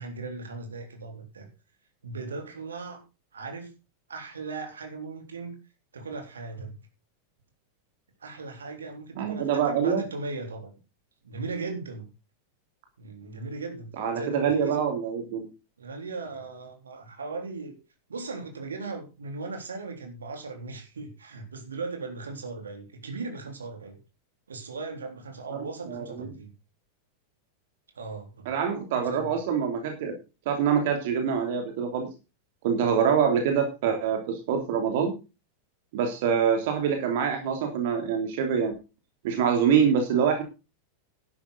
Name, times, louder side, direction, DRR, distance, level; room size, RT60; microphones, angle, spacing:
voice 1, 0.0-1.5 2.0-3.0 3.3-3.7 4.1-5.6 5.9-6.8 8.2-10.7 11.2-12.1 13.0-14.8 15.8-17.8 18.1-24.0 24.5-26.5 27.9-28.5 28.9-29.4, right 3 dB, 70° right, 4 dB, 3.6 m, -38 dB
voice 2, 9.2-10.0 14.0-15.5 25.5-26.3 28.4-30.1 30.4-32.1 32.6-35.1 35.9-38.7 39.2-40.4, right 7 dB, 50° right, 4 dB, 3.1 m, -25 dB
11.5 x 11.5 x 4.0 m, 0.30 s
figure-of-eight pair, 90°, 0 cm